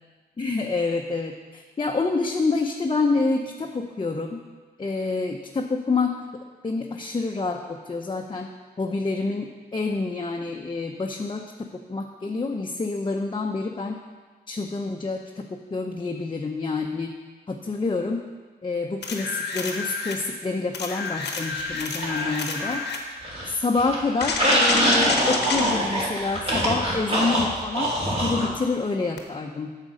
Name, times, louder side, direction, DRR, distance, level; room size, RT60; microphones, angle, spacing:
voice 1, 0.4-4.4 4.8-6.2 6.6-8.5 8.8-14.0 14.5-17.1 17.5-18.2 18.6-22.8 23.4-29.7, left 3 dB, 30° left, 1 dB, 0.7 m, -27 dB
sound 1, 19.0-20.2 20.7-23.1 24.2-25.8 29.2-29.3, left 4 dB, 85° left, 1.0 m, -30 dB
sound 2, 21.5-22.8 23.2-28.5, equal, 35° right, 2.3 m, -24 dB
7.9 x 6.6 x 5.0 m, 1.4 s
cardioid pair, 60°, 17 cm